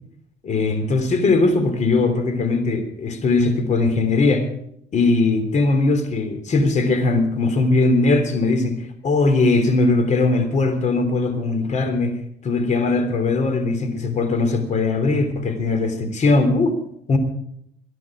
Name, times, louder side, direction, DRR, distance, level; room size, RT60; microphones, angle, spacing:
voice 1, 0.4-4.5 4.9-12.2 12.4-16.7 17.1-17.2, left 3 dB, 45° left, 8 dB, 3.3 m, -20 dB
23.0 x 10.5 x 4.9 m, 0.73 s
cardioid pair, 110°, 17 cm